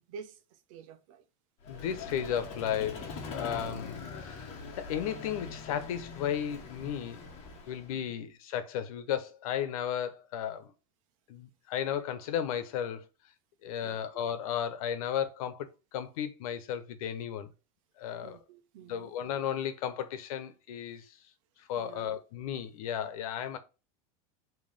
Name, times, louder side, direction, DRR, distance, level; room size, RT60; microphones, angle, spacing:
voice 1, 0.1-1.2 7.9-8.0 13.8-14.3 18.2-19.1 21.8-22.1, right 6 dB, 65° right, 1.0 m, -49 dB
Vehicle, 1.6-8.0, left 4 dB, 35° left, 1.5 m, -43 dB
voice 2, 1.7-7.2 7.7-10.7 11.3-13.1 13.6-17.5 18.0-18.4 18.8-21.2 21.6-23.6, left 9 dB, 80° left, 1.1 m, -34 dB
5.4 x 3.2 x 5.4 m
supercardioid pair, 170°, 18 cm